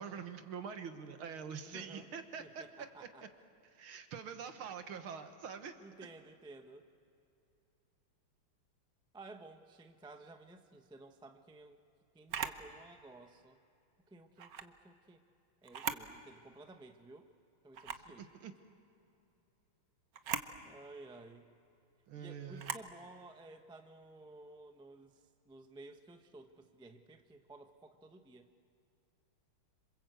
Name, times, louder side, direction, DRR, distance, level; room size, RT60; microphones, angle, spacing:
voice 1, 0.0-2.6 3.0-3.1 3.7-5.8 18.2-18.5 22.1-22.7, right 6 dB, 75° right, 7 dB, 2.2 m, -45 dB
voice 2, 1.7-2.1 2.4-3.2 5.8-6.9 9.1-11.8 12.1-13.6 14.1-15.2 15.6-17.3 17.6-18.3 20.6-21.5 22.2-25.2 25.5-28.5, right 2 dB, 5° right, 6 dB, 0.4 m, -54 dB
Camera, 12.3-12.6 14.4-14.7 15.6-16.1 16.6-16.7 17.7-18.1 20.1-20.5 22.6-22.9, right 8 dB, 55° right, 1.1 m, -39 dB
27.0 x 27.0 x 8.0 m, 2.8 s
omnidirectional pair, 2.3 m